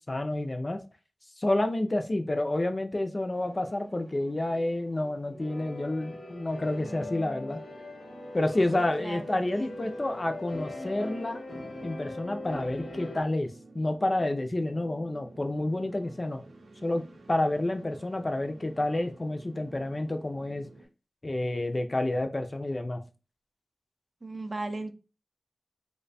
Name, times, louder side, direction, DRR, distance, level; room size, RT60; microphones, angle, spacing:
voice 1, 0.1-0.8 1.4-7.6 8.3-11.5 11.8-16.4 16.8-17.0 17.3-20.7 21.2-23.0, left 1 dB, 30° left, 0.4 m, -29 dB
sound 1, 3.3-20.9, right 2 dB, 80° right, 0.6 m, -52 dB
sound 2, 5.4-13.2, left 2 dB, 80° left, 0.9 m, -40 dB
voice 2, 6.8-7.5 8.7-9.9 24.2-24.9, right 2 dB, 35° right, 0.5 m, -39 dB
3.0 x 2.2 x 4.0 m
wide cardioid pair, 95°, 0 cm